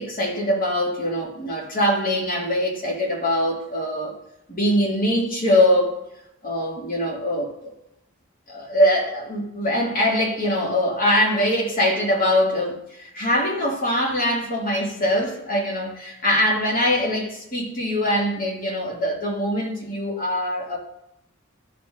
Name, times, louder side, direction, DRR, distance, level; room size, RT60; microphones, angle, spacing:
voice 1, 0.0-4.1 4.5-6.0 6.4-7.7 8.5-20.8, left 1 dB, 45° left, -3 dB, 2.4 m, -23 dB
13.0 x 4.6 x 3.8 m, 0.83 s
head